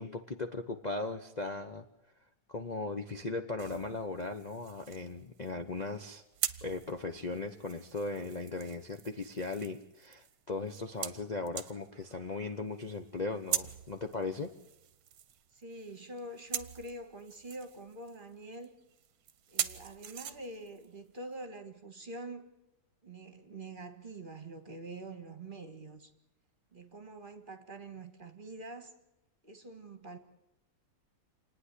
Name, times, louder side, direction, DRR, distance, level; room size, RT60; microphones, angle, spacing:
voice 1, 0.0-1.8 2.5-6.2 6.6-14.5, left 3 dB, 30° left, 6 dB, 0.8 m, -38 dB
sound 1, 3.6-21.5, right 9 dB, 65° right, 1.3 m, -43 dB
voice 2, 15.5-18.7 19.5-22.5 23.0-26.1 26.7-28.9 29.4-30.2, right 2 dB, 30° right, 7 dB, 1.7 m, -45 dB
27.5 x 9.9 x 10.0 m, 0.88 s
omnidirectional pair, 1.9 m